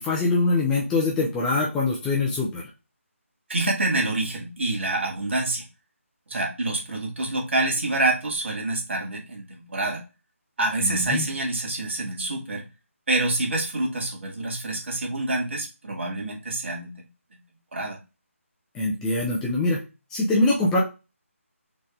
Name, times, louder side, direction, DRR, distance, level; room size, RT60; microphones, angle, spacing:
voice 1, 0.0-2.7 10.8-11.2 18.7-19.8 20.1-20.8, left 2 dB, 5° left, -4 dB, 0.5 m, -23 dB
voice 2, 3.5-5.7 6.3-10.0 10.6-12.7 13.1-16.9 17.7-18.0, right 2 dB, 55° right, 0 dB, 2.0 m, -27 dB
4.4 x 3.3 x 3.6 m, 0.28 s
figure-of-eight pair, 165°, 8 cm